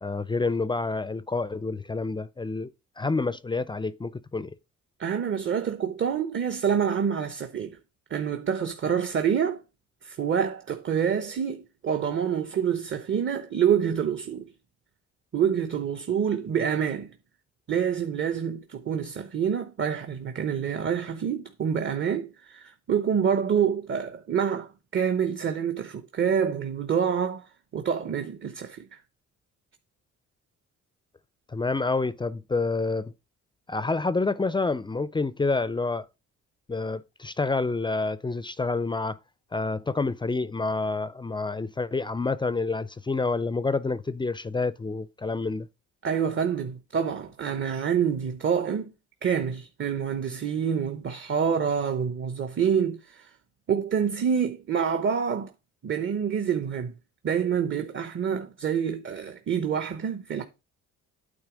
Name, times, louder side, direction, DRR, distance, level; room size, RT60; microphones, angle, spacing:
voice 1, 0.0-2.7 3.0-4.5 31.5-33.1 33.7-36.1 36.7-39.2 39.5-45.7, left 3 dB, 15° left, 0.4 m, -28 dB
voice 2, 5.0-7.8 8.1-9.6 10.0-14.5 15.3-17.1 17.7-27.4 27.7-29.0 46.0-48.9 49.2-53.3 53.7-55.5 55.8-56.9 57.2-60.4, right 7 dB, 40° right, 0.9 m, -27 dB
9.0 x 3.2 x 4.9 m
cardioid pair, 90°, 30 cm